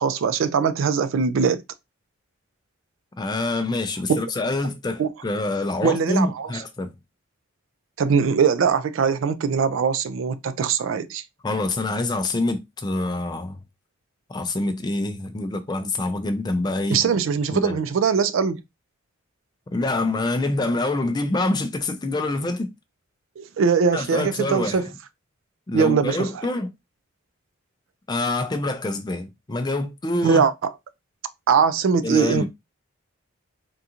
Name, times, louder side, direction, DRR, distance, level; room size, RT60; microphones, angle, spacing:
voice 1, 0.0-1.6 4.1-4.2 5.0-5.1 5.8-6.5 8.0-11.2 16.9-18.6 23.4-24.9 25.7-26.3 30.2-30.7 31.5-32.5, right 6 dB, 65° right, 0.3 m, -21 dB
voice 2, 3.2-6.9 11.4-13.6 14.3-17.0 17.5-17.8 19.7-22.7 23.9-24.9 25.7-26.7 28.1-30.4 32.0-32.5, left 2 dB, 20° left, 0.4 m, -26 dB
3.6 x 2.4 x 2.8 m
head